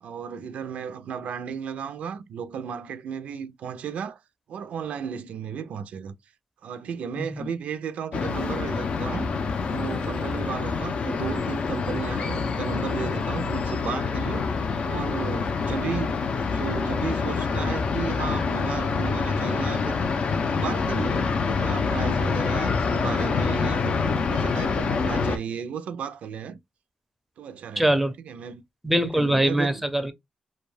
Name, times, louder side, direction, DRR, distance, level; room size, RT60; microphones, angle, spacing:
voice 1, 0.0-4.2 4.5-6.2 6.6-9.3 9.7-14.5 14.8-16.2 16.5-20.0 20.5-24.0 24.3-26.6 27.4-28.6 29.2-29.7, right 7 dB, 85° right, 0.4 m, -34 dB
voice 2, 7.2-7.5 27.8-28.1 28.8-30.1, right 1 dB, ahead, 0.5 m, -23 dB
sound 1, 8.1-25.4, left 5 dB, 60° left, 0.4 m, -26 dB
2.2 x 2.2 x 3.1 m
cardioid pair, 105°, 2 cm